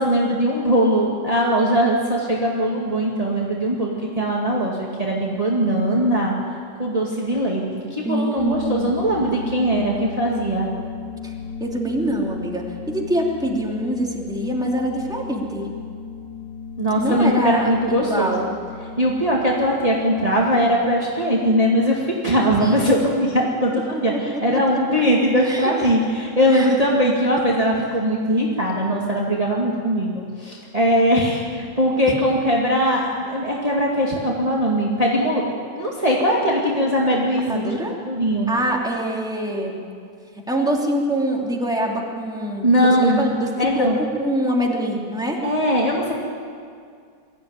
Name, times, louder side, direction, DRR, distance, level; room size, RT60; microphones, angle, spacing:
voice 1, 0.0-6.3 6.8-10.7 16.8-18.5 19.0-35.4 35.8-37.6 38.1-38.5 42.6-43.2 43.6-44.0 45.4-46.1, equal, 20° right, -3 dB, 2.3 m, -20 dB
voice 2, 8.0-9.8 11.2-11.3 11.6-15.7 17.0-18.5 22.6-22.9 25.4-25.9 26.5-26.7 37.5-37.9 38.5-39.8 40.5-45.4, right 1 dB, ahead, -1 dB, 2.7 m, -25 dB
sound 1, 8.4-19.5, left 6 dB, 40° right, 2.5 m, -35 dB
23.0 x 15.0 x 9.7 m, 2.2 s
omnidirectional pair, 2.0 m